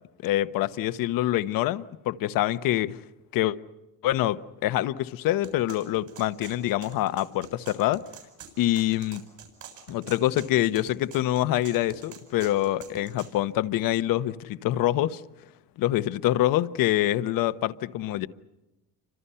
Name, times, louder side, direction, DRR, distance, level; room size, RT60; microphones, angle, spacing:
voice 1, 0.2-3.0 3.3-3.6 4.0-8.0 8.6-9.2 9.9-15.2 15.8-18.3, left 14 dB, 70° left, 1.2 m, -25 dB
sound 1, 5.4-13.3, right 8 dB, 60° right, 7.6 m, -47 dB
30.0 x 25.5 x 5.7 m
cardioid pair, 140°, 34 cm